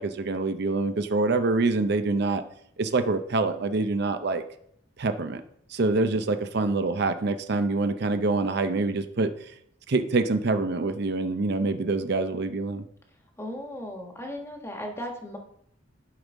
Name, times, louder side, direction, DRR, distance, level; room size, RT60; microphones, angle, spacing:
voice 1, 0.0-2.4 2.8-4.4 5.0-5.4 5.7-9.5 9.9-12.8, right 3 dB, 60° right, 9 dB, 0.6 m, -25 dB
voice 2, 13.4-15.4, left 1 dB, 15° left, 2 dB, 1.3 m, -36 dB
11.5 x 5.3 x 3.6 m, 0.68 s
head